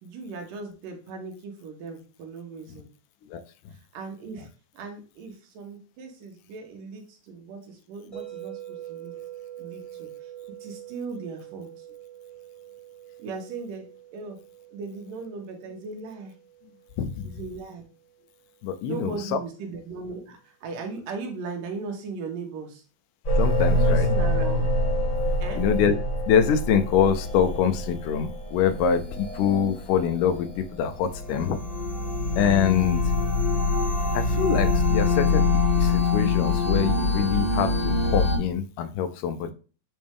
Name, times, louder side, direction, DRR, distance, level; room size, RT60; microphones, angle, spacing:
voice 1, 0.0-2.9 3.9-4.5 4.7-9.1 9.6-10.1 10.5-11.7 13.2-14.4 14.7-16.3 17.2-17.8 18.8-22.8 23.6-24.7 25.4-25.6, right 4 dB, 85° right, 3 dB, 2.8 m, -38 dB
voice 2, 3.3-3.7 17.0-17.2 18.6-19.4 23.4-24.1 25.6-25.9 26.3-31.6 32.4-33.1 34.1-35.5 35.8-39.5, left 7 dB, 80° left, 9 dB, 2.1 m, -25 dB
sound 1, 8.1-18.2, right 12 dB, ahead, 1.3 m, -44 dB
sound 2, 23.2-38.4, left 2 dB, 35° left, 1.3 m, -25 dB
8.6 x 3.2 x 3.5 m, 0.36 s
omnidirectional pair, 3.8 m